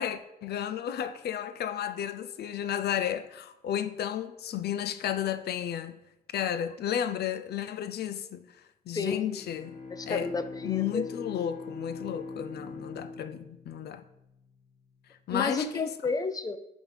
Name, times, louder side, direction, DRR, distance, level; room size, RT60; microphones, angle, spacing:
voice 1, 0.0-5.9 6.3-9.7 10.1-10.3 10.6-14.0 15.3-15.9, left 10 dB, 85° left, 0.4 m, -33 dB
voice 2, 8.9-9.3 9.9-11.1 15.3-16.6, left 3 dB, 25° left, 0.4 m, -31 dB
Bowed string instrument, 9.2-14.8, left 3 dB, 50° left, 1.4 m, -42 dB
7.2 x 3.5 x 4.8 m
wide cardioid pair, 165°, 16 cm